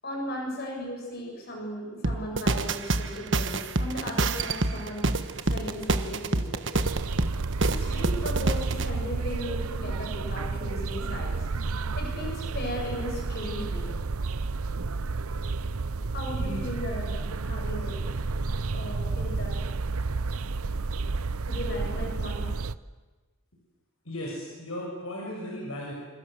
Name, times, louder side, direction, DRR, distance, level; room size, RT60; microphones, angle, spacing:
voice 1, 0.0-5.1 5.5-6.7 7.6-11.5 11.9-13.9 16.1-18.0 18.7-19.6 21.5-22.5, left 1 dB, 45° left, 1 dB, 7.7 m, -36 dB
sound 1, 2.0-8.9, right 2 dB, 55° right, 1.4 m, -28 dB
sound 2, 6.8-22.8, right 3 dB, 85° right, 0.8 m, -31 dB
voice 2, 24.0-25.9, left 1 dB, 80° left, -2 dB, 6.9 m, -36 dB
28.0 x 26.5 x 7.9 m, 1.3 s
head